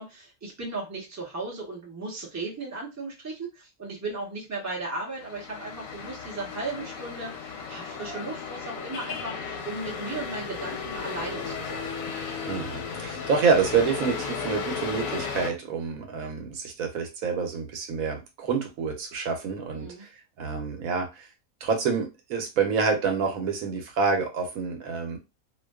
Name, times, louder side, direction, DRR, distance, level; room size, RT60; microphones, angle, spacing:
voice 1, 0.0-11.9 19.8-20.1, right 2 dB, 20° right, -3 dB, 0.4 m, -36 dB
sound 1, 5.2-15.5, left 5 dB, 70° left, 0.8 m, -35 dB
voice 2, 12.5-20.1 20.4-21.3 21.6-25.2, right 5 dB, 70° right, 3 dB, 1.0 m, -27 dB
2.5 x 2.2 x 2.2 m, 0.25 s
omnidirectional pair, 1.7 m